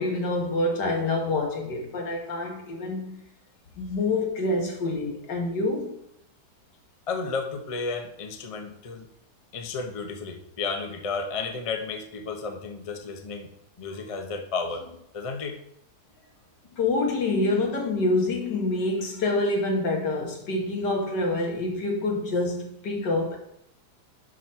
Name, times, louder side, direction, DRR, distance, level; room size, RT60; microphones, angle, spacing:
voice 1, 0.0-3.2 3.8-5.9 16.8-23.4, left 2 dB, 80° left, 1 dB, 2.1 m, -26 dB
voice 2, 7.1-9.1 9.5-15.6, left 4 dB, 50° left, 5 dB, 0.4 m, -33 dB
6.0 x 5.0 x 5.5 m, 0.76 s
omnidirectional pair, 1.8 m